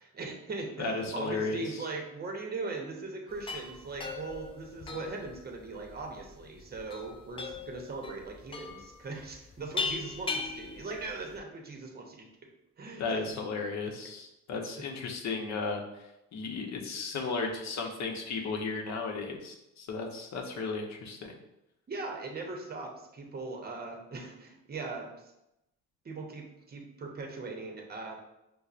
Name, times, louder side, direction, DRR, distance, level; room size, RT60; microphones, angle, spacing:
voice 1, 0.0-12.3 12.8-13.2 21.9-25.3 26.0-28.2, right 3 dB, 30° right, 2 dB, 0.7 m, -40 dB
voice 2, 0.8-1.6 13.0-16.0 16.3-21.4, left 4 dB, 65° left, 2 dB, 0.7 m, -34 dB
sound 1, 3.3-11.4, left 4 dB, 20° left, 0.3 m, -39 dB
5.3 x 2.0 x 2.4 m, 0.88 s
cardioid pair, 90°, 30 cm